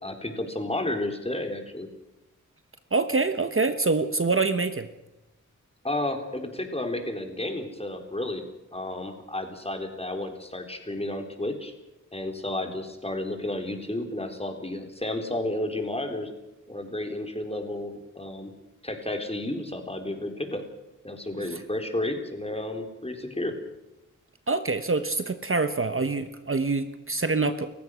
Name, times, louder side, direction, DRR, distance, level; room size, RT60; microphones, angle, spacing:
voice 1, 0.0-1.9 5.8-8.4 8.7-11.7 12.1-16.3 16.7-18.5 18.8-20.6 21.0-23.6, left 1 dB, 20° left, 5 dB, 3.9 m, -32 dB
voice 2, 2.9-4.9 21.4-21.6 24.5-27.7, right 3 dB, 40° right, 9 dB, 1.2 m, -25 dB
30.0 x 15.5 x 6.3 m, 0.94 s
wide cardioid pair, 75°, 32 cm